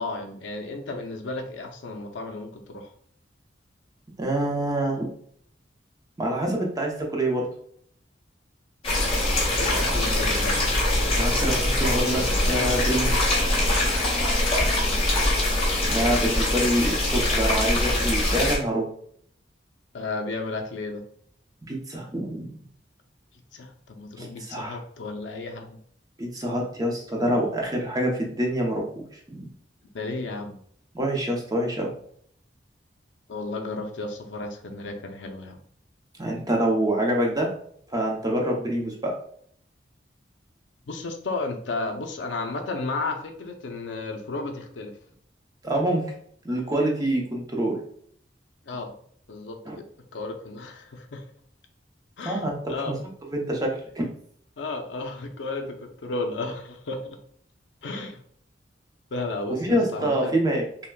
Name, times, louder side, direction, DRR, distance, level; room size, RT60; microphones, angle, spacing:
voice 1, 0.0-2.9 9.5-10.6 16.2-16.3 19.9-21.0 23.5-25.8 29.9-30.6 33.3-35.6 40.9-45.0 48.7-48.9 49.3-49.8 50.1-51.3 52.2-53.0 54.6-57.2 57.8-58.2 59.1-60.4, left 3 dB, 80° left, 5 dB, 0.5 m, -33 dB
voice 2, 4.2-5.1 6.2-7.5 11.1-13.3 15.8-18.9 21.7-22.5 24.2-24.8 26.2-28.8 29.1-29.5 30.9-31.9 36.2-37.5 37.9-39.2 45.6-46.1 46.4-47.8 49.6-49.8 52.2-52.9 53.3-54.0 59.6-60.6, right 1 dB, 20° right, 0 dB, 0.7 m, -26 dB
sound 1, 8.8-18.6, left 1 dB, 30° left, 1.2 m, -23 dB
5.7 x 2.1 x 2.3 m, 0.62 s
head